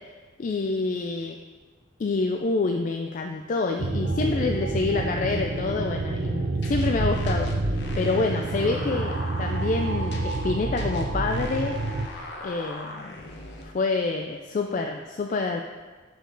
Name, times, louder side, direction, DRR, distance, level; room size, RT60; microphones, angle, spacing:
voice 1, 0.4-1.4 2.0-7.5 8.0-11.7 12.4-13.2 13.6-15.6, left 3 dB, 40° left, 3 dB, 0.3 m, -27 dB
sound 1, 3.8-12.1, right 2 dB, 55° right, 0.5 m, -28 dB
sound 2, 6.6-13.6, left 1 dB, 60° left, 0.8 m, -36 dB
6.5 x 5.1 x 3.9 m, 1.3 s
head